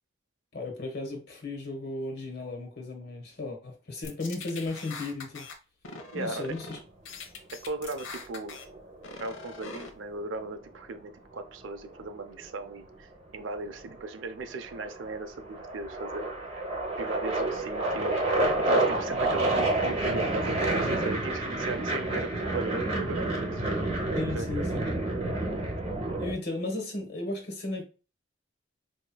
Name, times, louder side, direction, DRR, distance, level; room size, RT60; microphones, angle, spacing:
voice 1, 0.5-5.5 6.1-6.8 24.1-24.8 26.2-27.8, left 2 dB, 55° left, 1.1 m, -35 dB
sound 1, 4.0-5.5 5.8-6.8 7.1-8.6 9.0-9.9, left 4 dB, 85° left, 0.7 m, -42 dB
voice 2, 6.1-6.5 7.6-8.6 9.2-16.3 17.0-23.9 24.3-24.7, right 2 dB, 85° right, 0.5 m, -37 dB
sound 2, 8.4-9.6 11.4-12.7 13.6-14.1 14.4-26.3, right 2 dB, 30° right, 0.9 m, -29 dB
4.7 x 2.8 x 2.2 m
head